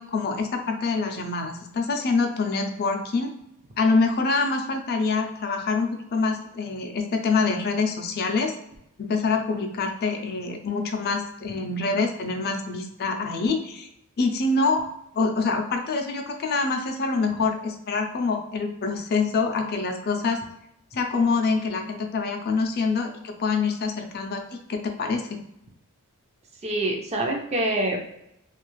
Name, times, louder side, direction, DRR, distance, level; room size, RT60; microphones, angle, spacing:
voice 1, 0.0-3.3 3.8-8.5 9.0-13.9 14.2-14.8 15.1-20.4 20.9-25.4, left 4 dB, 50° left, 4 dB, 0.4 m, -25 dB
voice 2, 26.6-28.0, right 1 dB, 30° right, 1 dB, 0.5 m, -25 dB
2.4 x 2.4 x 3.0 m, 0.80 s
head